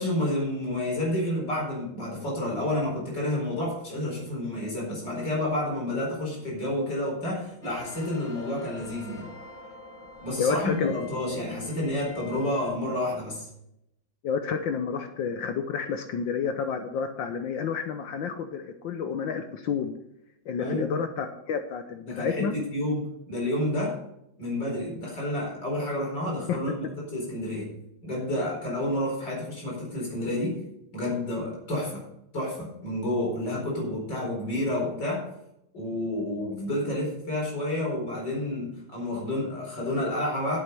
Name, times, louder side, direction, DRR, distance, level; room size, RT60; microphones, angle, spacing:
voice 1, 0.0-9.3 10.2-13.5 20.6-20.9 22.1-24.0 24.4-27.7 28.0-30.6 30.9-32.0 32.3-35.2 35.7-40.6, left 1 dB, 55° left, -2 dB, 5.1 m, -30 dB
sound 1, 7.6-12.7, left 2 dB, 15° left, 1.9 m, -46 dB
voice 2, 10.4-10.9 14.2-19.9 20.5-22.5 26.5-26.6, left 6 dB, 70° left, 7 dB, 1.5 m, -30 dB
11.0 x 8.1 x 5.5 m, 0.80 s
omnidirectional pair, 2.3 m